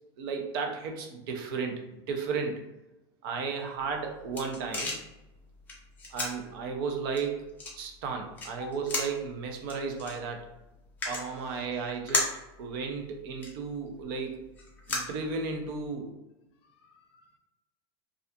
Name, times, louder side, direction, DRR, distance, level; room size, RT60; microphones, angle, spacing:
voice 1, 0.2-2.6 3.2-4.9 6.1-7.4 7.8-10.5 11.0-12.2 12.6-14.4 14.9-16.1, right 5 dB, 55° right, 3 dB, 0.5 m, -34 dB
sound 1, 3.8-15.9, left 2 dB, 10° left, 0.4 m, -38 dB
voice 2, 11.3-11.9 16.6-17.4, left 5 dB, 75° left, 5 dB, 0.5 m, -50 dB
2.3 x 2.3 x 2.6 m, 0.97 s
supercardioid pair, 170°, 14 cm